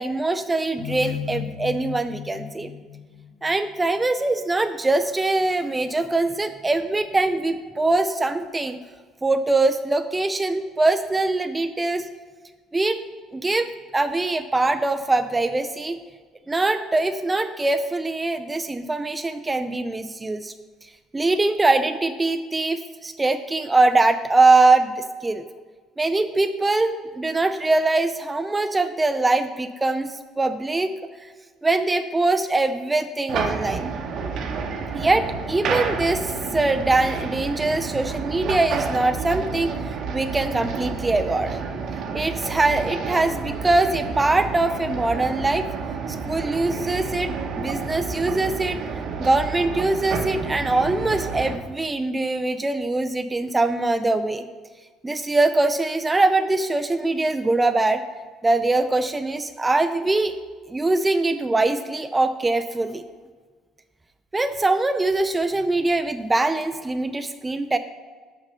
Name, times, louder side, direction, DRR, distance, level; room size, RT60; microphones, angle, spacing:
voice 1, 0.0-2.7 3.4-8.8 9.2-12.1 12.7-13.0 13.3-16.0 16.5-20.5 21.1-25.4 26.0-30.9 31.6-33.9 34.9-41.6 42.1-45.6 46.1-47.3 47.6-48.8 49.2-54.4 55.0-58.0 58.4-60.4 60.7-63.0 64.3-67.8, right 2 dB, 15° right, 9 dB, 0.3 m, -22 dB
sound 1, 0.8-4.0, left 9 dB, 25° left, 2.0 m, -35 dB
sound 2, 33.3-51.6, right 5 dB, 60° right, 0.9 m, -30 dB
6.0 x 5.4 x 6.6 m, 1.5 s
cardioid pair, 115°, 0 cm